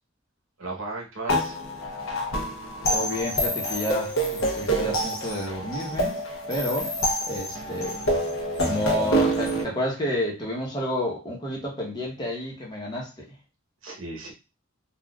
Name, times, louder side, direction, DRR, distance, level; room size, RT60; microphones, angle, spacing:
voice 1, 0.6-1.6 1.9-2.0 9.1-9.2 13.8-14.3, right 2 dB, 75° right, 0 dB, 1.0 m, -36 dB
sound 1, 1.3-9.6, right 1 dB, 80° left, 0.8 m, -27 dB
voice 2, 2.8-6.2 6.5-6.9 7.2-8.0 8.6-13.3, left 1 dB, 20° left, -2 dB, 0.9 m, -30 dB
3.8 x 2.3 x 2.3 m, 0.28 s
head